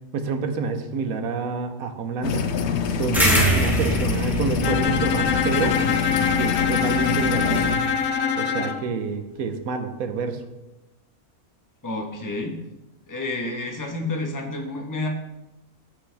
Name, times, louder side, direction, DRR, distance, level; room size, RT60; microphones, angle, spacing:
voice 1, 0.1-2.4 3.0-5.8 6.4-7.7 8.4-10.4, right 4 dB, 75° right, 7 dB, 1.3 m, -28 dB
sound 1, 2.2-7.7, left 6 dB, 60° left, 0.9 m, -26 dB
sound 2, 3.1-8.0, right 1 dB, ahead, 1.8 m, -26 dB
Bowed string instrument, 4.6-8.8, left 7 dB, 90° left, 1.2 m, -24 dB
voice 2, 11.8-12.6 13.1-15.1, left 2 dB, 15° left, 2 dB, 1.0 m, -29 dB
15.0 x 5.3 x 3.4 m, 0.99 s
omnidirectional pair, 1.5 m